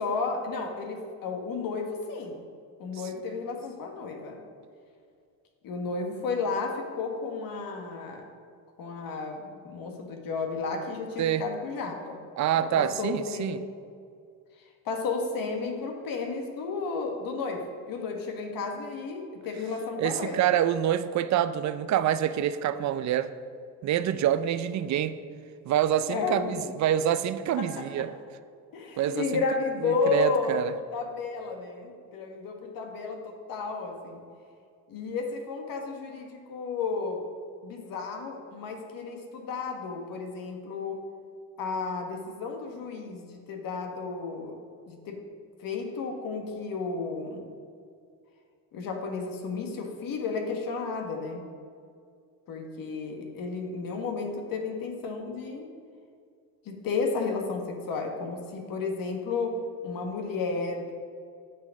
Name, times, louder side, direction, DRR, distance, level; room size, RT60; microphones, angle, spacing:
voice 1, 0.0-2.4 2.8-4.4 5.6-8.2 8.8-12.2 12.5-13.6 14.8-20.5 26.1-26.8 27.6-28.1 28.7-34.2 34.9-37.2 37.6-41.0 41.6-44.6 44.8-45.2 45.6-47.4 48.7-51.4 52.5-55.7 56.6-59.6 59.8-60.9, left 4 dB, 60° left, 3 dB, 1.5 m, -32 dB
voice 2, 12.4-13.6 20.0-23.3 23.8-25.1 25.7-28.1 29.0-29.3 29.8-30.7, right 10 dB, 50° right, 13 dB, 0.6 m, -26 dB
10.0 x 6.2 x 6.4 m, 2.3 s
cardioid pair, 110°, 38 cm